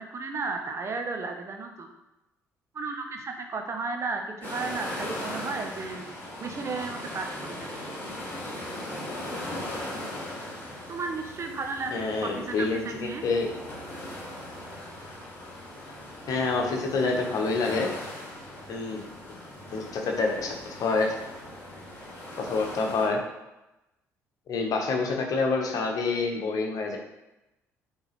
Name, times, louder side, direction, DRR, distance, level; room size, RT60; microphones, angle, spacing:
voice 1, 0.0-1.9 2.7-6.0 6.4-7.7 8.0-8.1 10.9-13.2, right 4 dB, 35° right, 4 dB, 1.0 m, -34 dB
sound 1, 4.4-23.1, left 1 dB, 25° left, 2.4 m, -39 dB
voice 2, 11.9-12.8 13.2-13.5 16.3-17.9 18.7-19.0 19.7-21.1 22.4-23.2 24.5-27.0, left 3 dB, 50° left, 2 dB, 1.2 m, -27 dB
8.7 x 3.8 x 3.2 m, 0.95 s
figure-of-eight pair, 50°, 8 cm